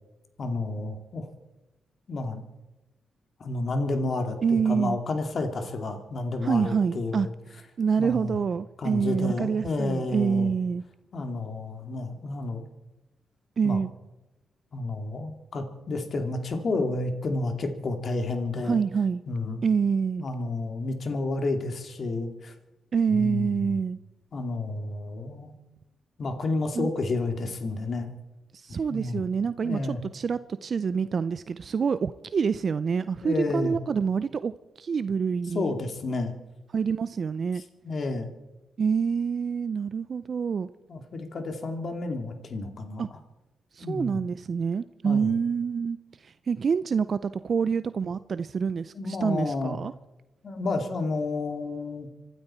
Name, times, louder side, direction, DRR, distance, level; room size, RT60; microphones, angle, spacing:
voice 1, 0.4-1.3 2.1-2.4 3.4-7.3 8.0-8.4 8.8-10.5 11.1-12.6 13.6-13.8 14.7-18.8 19.3-19.6 20.2-22.5 23.1-23.8 24.3-25.5 26.2-28.1 28.9-29.2 29.6-30.0 33.2-33.8 35.5-36.3 37.6-38.3 40.9-43.0 43.8-44.2 45.0-45.4 48.9-49.8 50.4-52.1, left 2 dB, 55° left, 2.5 m, -30 dB
voice 2, 4.4-5.0 6.4-7.3 7.8-10.8 13.6-13.9 18.7-19.2 19.6-20.2 22.9-24.0 26.7-26.9 28.5-34.5 34.8-35.7 36.7-37.6 38.8-40.7 43.0-43.1 43.7-46.0 46.2-49.9, right 6 dB, 55° right, 0.5 m, -26 dB
26.0 x 12.5 x 4.4 m
supercardioid pair, 55°, 0 cm